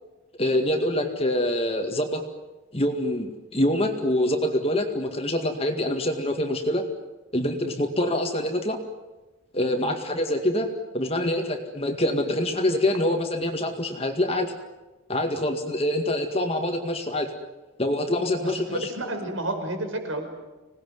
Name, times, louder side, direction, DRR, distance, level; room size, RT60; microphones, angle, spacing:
voice 1, 0.4-2.3 2.7-6.8 7.3-8.8 9.5-14.5 15.1-17.3 17.8-18.9, left 1 dB, 30° left, 4 dB, 2.1 m, -25 dB
voice 2, 18.4-20.3, right 1 dB, 75° right, 5 dB, 5.5 m, -31 dB
26.0 x 19.5 x 9.6 m, 1.1 s
head